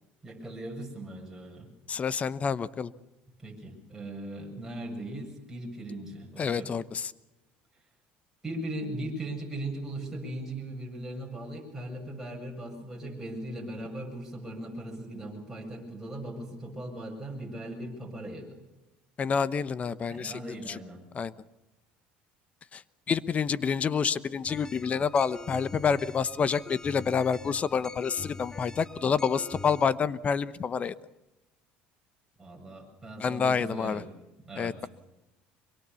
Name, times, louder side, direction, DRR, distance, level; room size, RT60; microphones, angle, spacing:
voice 1, 0.2-1.7 3.4-6.7 8.4-18.6 20.1-21.0 32.4-34.1 34.4-34.9, right 1 dB, 10° right, -1 dB, 7.7 m, -39 dB
voice 2, 1.9-2.9 6.4-7.1 19.2-20.8 21.1-21.3 22.7-22.8 23.1-30.9 33.2-34.0 34.6-34.9, left 6 dB, 30° left, 17 dB, 0.9 m, -28 dB
sound 1, 24.5-29.8, left 3 dB, 15° left, 1.3 m, -44 dB
24.5 x 22.5 x 7.1 m, 0.97 s
supercardioid pair, 105°, 4 cm